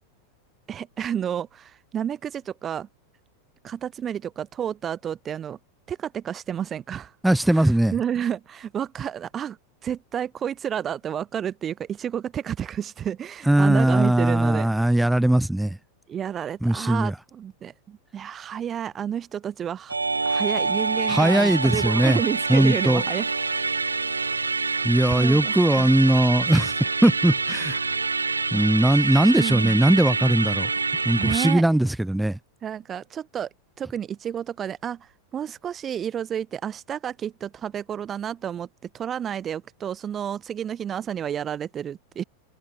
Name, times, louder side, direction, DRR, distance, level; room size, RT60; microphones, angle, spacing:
voice 1, 0.7-2.9 3.6-5.6 5.9-7.1 7.5-9.6 9.8-14.7 16.1-19.9 20.2-23.3 25.2-25.9 29.3-29.7 31.2-31.6 32.6-33.5 33.8-38.7 38.9-42.2, right 9 dB, 25° right, 5.1 m, -30 dB
voice 2, 7.2-7.9 13.5-15.8 16.6-17.1 21.1-22.2 22.5-23.0 24.8-26.7 27.0-27.8 28.5-30.7 31.1-32.4, right 1 dB, 5° right, 3.6 m, -20 dB
Musical instrument, 19.9-31.6, right 4 dB, 80° right, 3.6 m, -26 dB
figure-of-eight pair, 90°, 0 cm